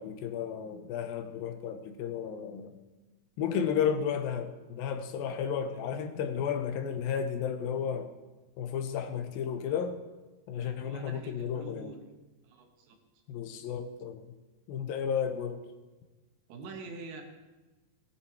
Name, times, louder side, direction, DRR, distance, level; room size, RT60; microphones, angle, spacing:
voice 1, 0.0-2.7 3.4-8.1 8.6-10.0 10.5-11.9 13.3-14.3 14.7-15.7, left 7 dB, 75° left, 7 dB, 2.5 m, -33 dB
voice 2, 10.5-12.0 12.4-13.0 16.5-17.2, right 3 dB, 90° right, 3 dB, 3.6 m, -45 dB
18.5 x 10.0 x 4.6 m, 1.2 s
omnidirectional pair, 4.5 m